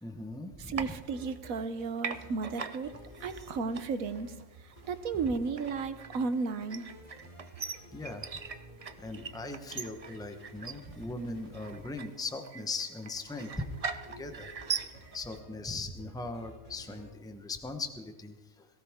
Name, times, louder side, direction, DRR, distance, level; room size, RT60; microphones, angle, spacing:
voice 1, 0.0-1.0 7.9-8.3 9.0-13.6 14.2-14.5 15.1-18.7, left 2 dB, 5° left, 6 dB, 1.0 m, -39 dB
voice 2, 0.6-2.9 3.2-4.3 4.9-6.8, right 4 dB, 80° right, 11 dB, 1.4 m, -33 dB
sound 1, 0.7-1.7 2.0-15.4, right 5 dB, 40° right, 0.5 m, -41 dB
sound 2, 1.1-1.9 2.1-4.4 4.8-6.3 6.6-11.8 13.4-15.7 16.0-17.1, equal, 35° left, 3.4 m, -52 dB
18.5 x 17.0 x 3.7 m, 1.2 s
omnidirectional pair, 1.4 m